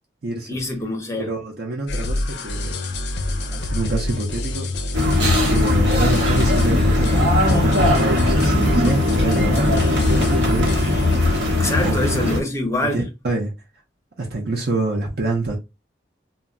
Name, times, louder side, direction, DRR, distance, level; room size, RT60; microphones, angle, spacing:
voice 1, 0.5-1.3 11.5-13.0, left 1 dB, 15° left, 0.6 m, -25 dB
voice 2, 1.3-2.8 3.3-4.7 4.9-5.2 5.5-10.8 11.8-12.2 12.8-13.5 14.2-15.6, right 2 dB, 60° right, 0.6 m, -26 dB
sound 1, 1.9-11.4, left 1 dB, 70° left, 0.4 m, -26 dB
sound 2, 4.9-12.4, left 2 dB, 80° right, 0.9 m, -19 dB
2.1 x 2.1 x 3.6 m
head